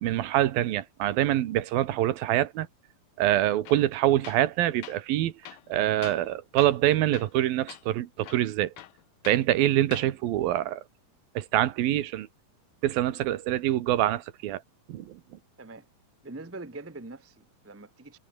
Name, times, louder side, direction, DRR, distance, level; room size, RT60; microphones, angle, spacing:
voice 1, 0.0-2.7 3.2-5.3 5.7-8.7 9.3-10.8 11.4-12.3 12.8-14.6 14.9-15.2, right 13 dB, 80° right, 3.1 m, -25 dB
Tools, 3.7-3.9 4.2-4.5 4.8-5.0 5.4-6.3 6.6-6.9 7.1-7.4 7.7-7.8 8.2-9.5 9.8-10.1, left 12 dB, 80° left, 3.0 m, -45 dB
voice 2, 16.2-18.2, right 2 dB, 10° right, 0.6 m, -43 dB
omnidirectional pair, 4.1 m